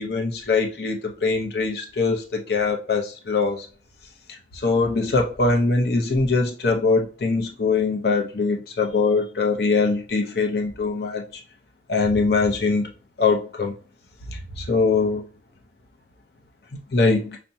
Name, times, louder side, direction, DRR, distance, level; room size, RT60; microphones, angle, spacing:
voice 1, 0.0-3.7 4.6-11.4 11.9-12.9 13.2-13.7 14.3-15.3 16.9-17.4, left 4 dB, 60° left, 1 dB, 0.6 m, -22 dB
5.5 x 2.1 x 2.7 m, 0.38 s
head